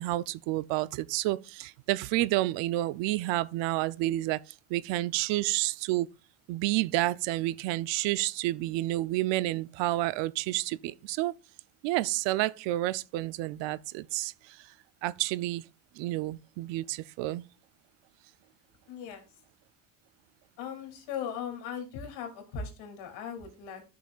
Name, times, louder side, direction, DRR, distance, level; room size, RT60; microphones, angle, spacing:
voice 1, 0.0-6.1 6.5-11.3 11.8-14.6 15.0-15.6 16.0-17.4, right 17 dB, 75° right, 0.6 m, -30 dB
voice 2, 18.9-19.2 20.6-23.8, left 7 dB, 80° left, 2.8 m, -38 dB
13.0 x 5.9 x 2.4 m
cardioid pair, 115°, 44 cm